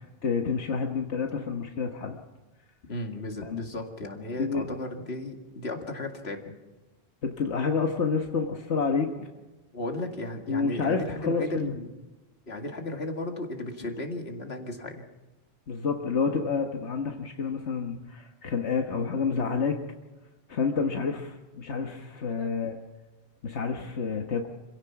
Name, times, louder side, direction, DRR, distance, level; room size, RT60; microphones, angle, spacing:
voice 1, 0.2-2.2 3.4-3.6 4.4-4.7 7.2-9.1 10.5-11.7 15.7-19.8 20.5-22.8 23.4-24.5, left 5 dB, 85° left, 3 dB, 1.6 m, -29 dB
voice 2, 2.9-6.5 9.7-11.9 12.5-15.0 22.3-22.5, left 2 dB, 65° left, 3 dB, 2.4 m, -35 dB
26.5 x 16.5 x 5.9 m, 1.1 s
omnidirectional pair, 1.1 m